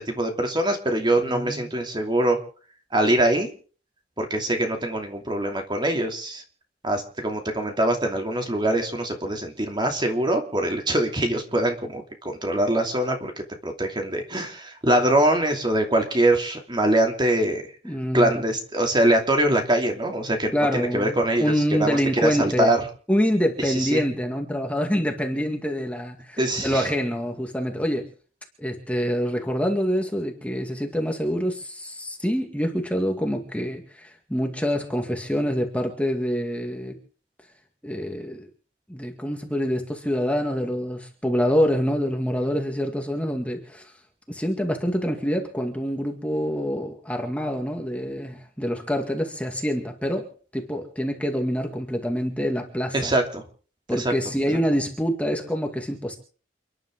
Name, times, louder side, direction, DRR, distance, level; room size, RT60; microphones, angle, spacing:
voice 1, 0.0-2.4 2.9-3.5 4.2-6.4 6.8-13.3 13.6-17.6 18.1-22.8 23.6-24.0 26.4-26.9 52.9-53.4 53.9-54.1 54.4-54.6, right 1 dB, 25° right, 3 dB, 2.8 m, -23 dB
voice 2, 1.2-1.7 17.8-18.4 20.5-22.7 23.1-28.1 28.6-37.0 37.8-38.5 38.9-43.8 44.3-53.1 53.9-56.2, equal, 10° left, 3 dB, 2.1 m, -26 dB
29.5 x 11.0 x 3.8 m, 0.42 s
head